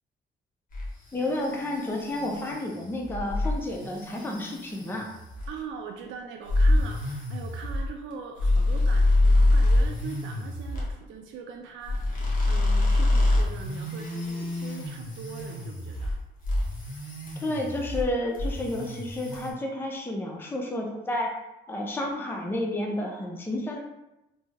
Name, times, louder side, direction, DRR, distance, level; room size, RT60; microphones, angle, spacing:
sound 1, 0.7-5.6 6.4-10.9 11.8-16.2 16.4-18.1 18.3-19.5, left 2 dB, 40° left, 1.1 m, -26 dB
voice 1, 1.1-5.1 17.4-21.3 21.7-23.8, left 1 dB, 10° left, 0 dB, 0.5 m, -31 dB
voice 2, 5.5-16.1, right 6 dB, 70° right, 2 dB, 0.4 m, -41 dB
3.3 x 2.0 x 3.3 m, 0.93 s
supercardioid pair, 65°, 21 cm